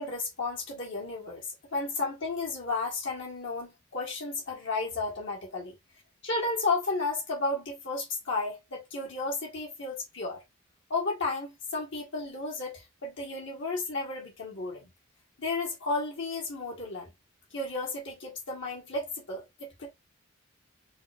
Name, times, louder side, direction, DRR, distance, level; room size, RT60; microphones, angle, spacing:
voice 1, 0.0-5.8 6.2-10.4 10.9-14.9 15.4-17.1 17.5-19.9, left 3 dB, 60° left, 1.6 m, -33 dB
3.9 x 2.6 x 3.4 m
head